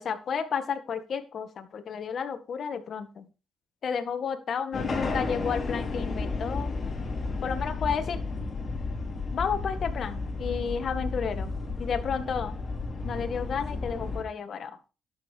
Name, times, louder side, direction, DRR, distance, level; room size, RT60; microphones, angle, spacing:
voice 1, 0.0-3.3 3.8-6.7 7.4-8.2 9.3-11.5 11.8-12.5 13.0-14.8, left 6 dB, 55° left, 8 dB, 1.9 m, -32 dB
sound 1, 4.7-14.2, left 3 dB, 35° left, 5.0 m, -32 dB
11.5 x 8.0 x 4.7 m, 0.32 s
cardioid pair, 90°, 0 cm